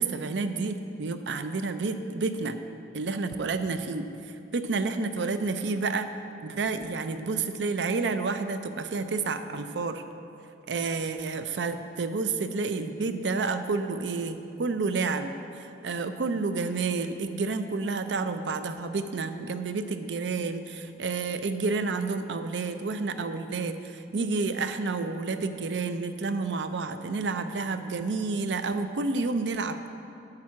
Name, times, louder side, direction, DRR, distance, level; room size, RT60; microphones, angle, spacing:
voice 1, 0.0-2.6 2.9-4.1 4.5-6.1 6.4-10.0 10.7-29.9, right 4 dB, 90° right, 9 dB, 0.5 m, -30 dB
9.7 x 4.7 x 7.3 m, 2.8 s
head